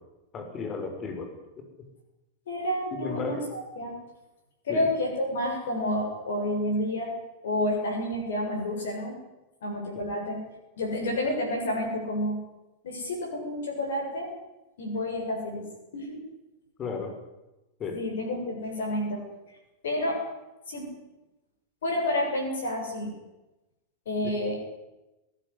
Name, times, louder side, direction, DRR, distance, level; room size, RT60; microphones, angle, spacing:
voice 1, 0.3-1.3 2.9-3.5 4.7-4.9 16.8-17.1 17.8-18.0, left 4 dB, 30° left, 5 dB, 6.5 m, -33 dB
voice 2, 2.5-4.0 4.6-7.2 7.4-9.2 9.6-10.4 10.8-12.4 12.8-14.3 14.8-15.7 15.9-16.2 17.9-19.2 19.8-20.2 20.7-21.0 21.8-23.1 24.1-24.6, left 1 dB, 60° left, 0 dB, 7.4 m, -29 dB
21.0 x 18.0 x 10.0 m, 0.99 s
figure-of-eight pair, 90°, 0 cm